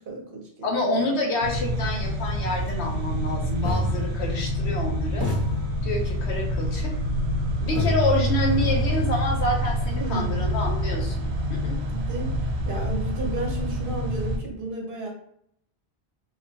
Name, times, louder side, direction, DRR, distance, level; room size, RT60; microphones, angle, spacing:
voice 1, 0.0-1.0 9.9-10.4 11.9-15.1, right 2 dB, 55° right, -1 dB, 1.1 m, -33 dB
voice 2, 0.6-5.3 5.8-6.9 7.6-11.8, left 2 dB, 85° left, 1 dB, 1.1 m, -28 dB
sound 1, 1.4-14.4, equal, 80° right, 0.8 m, -27 dB
sound 2, 2.5-2.7 3.6-4.8 5.2-6.4 7.7-11.7, equal, 15° left, 1.4 m, -30 dB
3.5 x 3.2 x 2.8 m, 0.69 s
omnidirectional pair, 1.1 m